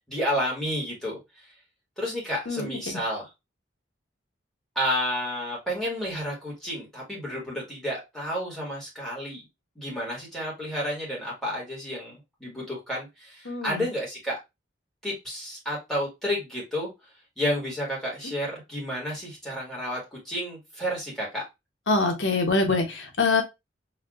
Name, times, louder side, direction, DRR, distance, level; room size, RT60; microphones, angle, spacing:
voice 1, 0.1-1.2 2.0-3.3 4.8-9.5 9.8-14.4 15.0-16.9 17.4-21.4, equal, ahead, -5 dB, 1.6 m, -31 dB
voice 2, 2.5-2.8 13.5-13.9 21.9-23.4, left 3 dB, 70° left, 3 dB, 1.0 m, -24 dB
4.4 x 2.7 x 2.4 m, 0.21 s
head